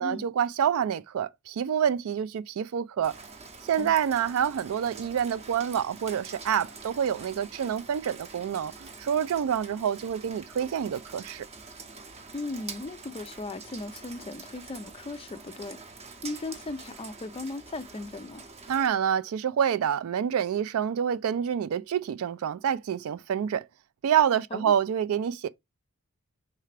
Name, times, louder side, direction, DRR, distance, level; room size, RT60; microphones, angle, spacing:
voice 1, 0.0-3.1 3.6-11.5 18.7-23.7 24.0-25.5, right 8 dB, 70° right, 0.3 m, -27 dB
Rain, 3.0-18.9, right 4 dB, 30° right, 0.6 m, -46 dB
voice 2, 12.3-15.8 16.2-18.4 24.5-24.7, left 2 dB, 25° left, 0.4 m, -37 dB
4.7 x 3.3 x 3.3 m
head